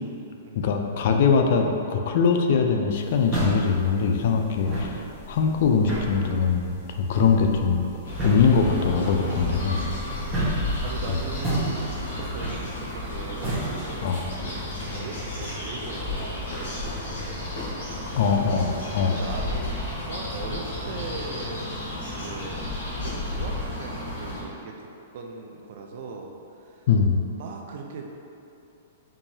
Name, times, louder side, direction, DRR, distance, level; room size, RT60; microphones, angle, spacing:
voice 1, 0.6-7.9 8.2-9.9 14.0-14.2 18.1-19.2 26.9-27.2, left 5 dB, 50° left, 4 dB, 0.3 m, -22 dB
sound 1, 2.9-14.3, right 1 dB, 15° right, 1.0 m, -33 dB
sound 2, 8.0-24.4, left 1 dB, 70° left, 1.4 m, -32 dB
voice 2, 9.3-14.1 14.9-19.8 20.1-24.9 25.1-26.3 26.6-26.9 27.4-28.2, right 4 dB, 50° right, 2 dB, 0.4 m, -40 dB
4.6 x 2.7 x 2.7 m, 2.7 s
hypercardioid pair, 160°, 0 cm